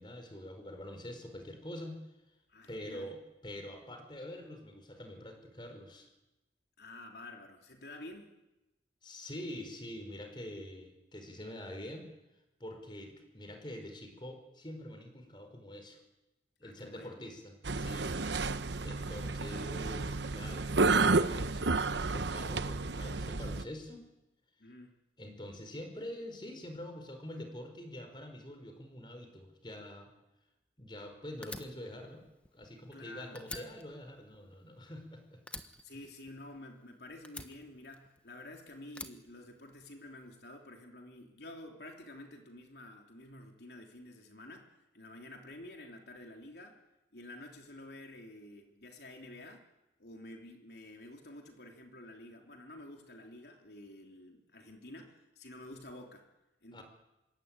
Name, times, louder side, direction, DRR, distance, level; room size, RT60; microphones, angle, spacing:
voice 1, 0.0-2.0 2.7-6.1 9.0-12.1 12.6-16.0 16.6-18.2 18.8-24.0 25.2-30.1 30.8-32.2 32.5-35.4 56.7-56.8, left 1 dB, 25° left, 6 dB, 4.7 m, -45 dB
voice 2, 2.5-3.1 6.8-8.3 16.6-17.1 24.6-24.9 32.9-33.7 35.8-44.7 44.9-46.8 47.1-49.6 50.0-56.3 56.6-56.8, left 1 dB, 70° left, 3 dB, 3.2 m, -50 dB
sound 1, 17.6-23.6, right 3 dB, 85° right, 1.0 m, -31 dB
Fire, 31.4-33.0 33.3-35.1 35.5-36.8 37.2-38.4 38.9-40.1, left 2 dB, 5° left, 1.2 m, -47 dB
26.0 x 23.0 x 9.0 m, 0.97 s
head